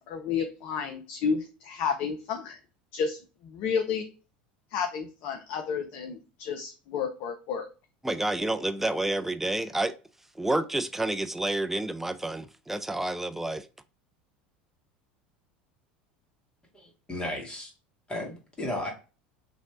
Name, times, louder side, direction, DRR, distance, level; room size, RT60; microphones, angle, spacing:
voice 1, 0.0-2.6 2.9-3.2 3.4-4.1 4.7-7.7, left 6 dB, 55° left, 0.6 m, -31 dB
voice 2, 8.0-9.9 10.4-13.7, right 2 dB, 5° right, 0.4 m, -29 dB
voice 3, 16.7-17.7 18.1-18.9, left 1 dB, 20° left, 1.6 m, -34 dB
3.1 x 2.7 x 4.4 m
hypercardioid pair, 80°, 5 cm